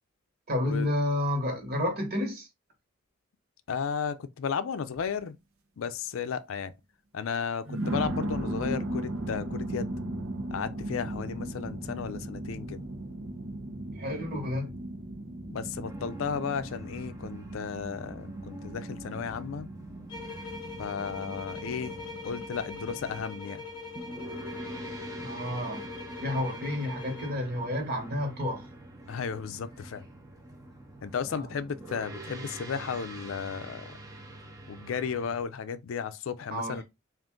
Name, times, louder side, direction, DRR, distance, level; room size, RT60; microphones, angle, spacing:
voice 1, 0.5-2.5 13.9-14.8 25.2-25.8 26.2-28.6 31.3-31.5 36.5-36.8, left 1 dB, 50° right, 1.4 m, -30 dB
voice 2, 3.7-5.4 5.8-6.7 7.1-10.0 10.5-12.8 15.5-19.7 20.8-23.6 29.1-30.1 31.0-34.0 34.7-36.8, left 6 dB, 70° left, 0.4 m, -34 dB
sound 1, 4.9-5.2 5.8-5.9 7.7-23.2, right 1 dB, 80° right, 0.8 m, -37 dB
sound 2, 15.8-35.4, right 1 dB, 15° right, 0.7 m, -45 dB
sound 3, 20.1-27.5, left 4 dB, 20° left, 0.7 m, -42 dB
3.7 x 2.5 x 3.6 m
head